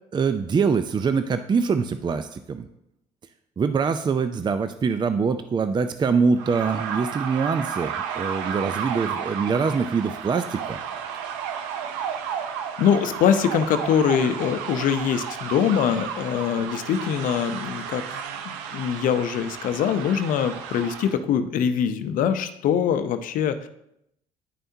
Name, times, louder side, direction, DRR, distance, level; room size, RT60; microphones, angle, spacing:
voice 1, 0.1-2.7 3.6-10.8, right 5 dB, 30° right, 10 dB, 0.4 m, -24 dB
sound 1, 6.4-21.2, right 7 dB, 85° right, 0.6 m, -33 dB
voice 2, 12.8-23.7, left 8 dB, 65° left, 10 dB, 0.6 m, -23 dB
10.0 x 5.5 x 2.7 m, 0.77 s
hypercardioid pair, 60°, 15 cm